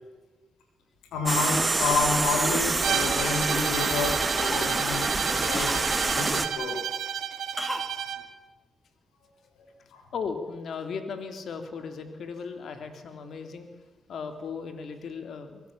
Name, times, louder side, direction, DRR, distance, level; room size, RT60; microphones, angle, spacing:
voice 1, 1.1-5.7 6.0-6.8 9.9-10.0, left 4 dB, 90° left, 3 dB, 6.5 m, -29 dB
sound 1, 1.3-6.5, right 3 dB, 30° right, 2.2 m, -27 dB
Cough, 2.2-3.4 3.8-4.0 4.4-6.2 7.6-7.9 8.2-8.3, equal, ahead, 2.8 m, -37 dB
Bowed string instrument, 2.8-8.3, right 9 dB, 85° right, 1.5 m, -32 dB
voice 2, 10.1-13.7 14.1-15.6, left 5 dB, 70° left, 7 dB, 3.4 m, -36 dB
24.5 x 17.5 x 8.8 m, 1.2 s
supercardioid pair, 50°, 0 cm